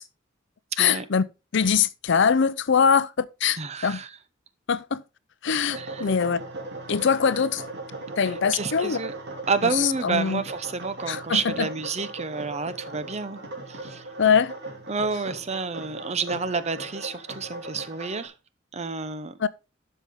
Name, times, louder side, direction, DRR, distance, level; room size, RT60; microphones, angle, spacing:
voice 1, 0.8-1.2 1.5-4.0 4.7-5.0 5.4-6.4 6.9-7.6 8.2-9.0 9.8-10.4 11.1-11.7 14.2-14.5 19.4-19.5, left 6 dB, 60° left, 0.5 m, -22 dB
voice 2, 3.6-4.1 5.7-6.1 8.2-9.1 9.5-13.4 13.7-14.1 14.9-18.3 18.7-19.4, right 4 dB, 35° right, 0.8 m, -29 dB
sound 1, 5.7-18.3, right 2 dB, 55° right, 2.6 m, -38 dB
12.0 x 5.6 x 3.6 m
head